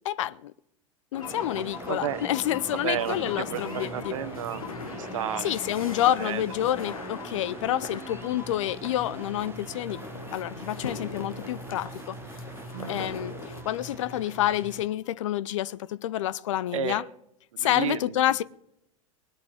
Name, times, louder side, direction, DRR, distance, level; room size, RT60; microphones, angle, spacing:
voice 1, 0.0-0.5 1.1-4.2 5.4-10.0 10.3-12.2 12.9-13.4 13.6-17.0 17.6-18.4, left 13 dB, 65° left, 0.6 m, -28 dB
sound 1, 1.1-13.6, left 4 dB, 80° left, 1.4 m, -41 dB
sound 2, 1.2-16.4, left 6 dB, 25° left, 4.1 m, -49 dB
sound 3, 1.2-14.9, right 3 dB, 15° right, 0.9 m, -43 dB
voice 2, 1.9-2.2 2.7-4.6 4.9-5.5 6.2-6.4 12.7-13.1 16.7-17.0 17.5-18.1, right 9 dB, 65° right, 1.2 m, -32 dB
19.5 x 8.6 x 5.7 m
figure-of-eight pair, 90°, 18 cm